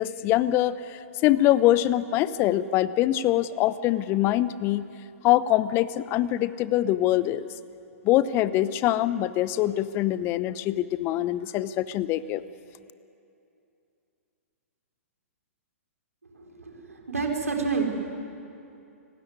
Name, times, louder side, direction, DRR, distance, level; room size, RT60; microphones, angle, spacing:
voice 1, 0.0-4.9 5.2-7.5 8.0-12.4, left 14 dB, 30° left, 16 dB, 0.8 m, -24 dB
voice 2, 16.3-17.8, right 5 dB, 80° right, 1 dB, 4.5 m, -29 dB
29.5 x 16.5 x 9.7 m, 2.7 s
figure-of-eight pair, 115°, 8 cm